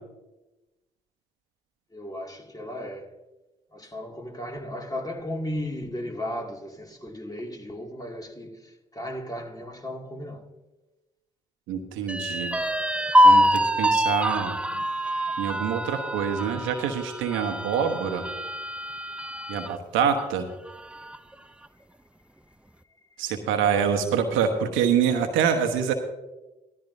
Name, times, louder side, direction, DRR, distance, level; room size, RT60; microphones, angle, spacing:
voice 1, 1.9-3.1 3.7-10.5, left 1 dB, 20° left, 2.3 m, -35 dB
voice 2, 11.7-12.6 13.2-14.5 15.4-18.2 19.5-20.5 23.2-25.9, right 7 dB, 75° right, 1.1 m, -25 dB
sound 1, 12.1-19.7 20.2-20.3 20.7-21.3, equal, 5° right, 0.6 m, -24 dB
16.0 x 13.0 x 2.7 m
hypercardioid pair, 40°, 20 cm